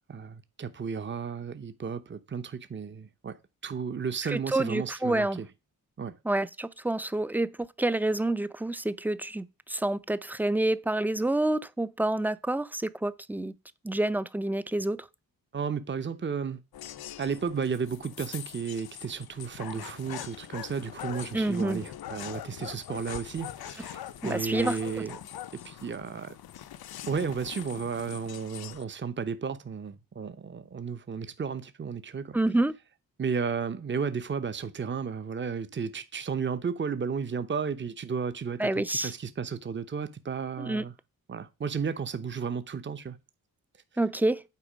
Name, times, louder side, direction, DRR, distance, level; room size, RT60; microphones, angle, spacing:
voice 1, 0.1-3.4 3.6-5.5 6.0-6.1 15.5-16.6 17.2-25.2 25.5-26.3 27.1-32.4 33.2-40.9 41.3-43.2, right 6 dB, 30° right, 0.8 m, -33 dB
voice 2, 4.3-5.4 6.2-13.5 13.8-15.1 21.3-21.8 24.2-25.0 32.3-32.7 38.6-39.1 40.6-40.9 44.0-44.4, right 2 dB, 5° right, 0.4 m, -28 dB
sound 1, 16.7-28.8, left 11 dB, 75° left, 0.7 m, -42 dB
8.4 x 4.3 x 5.1 m
cardioid pair, 80°, 37 cm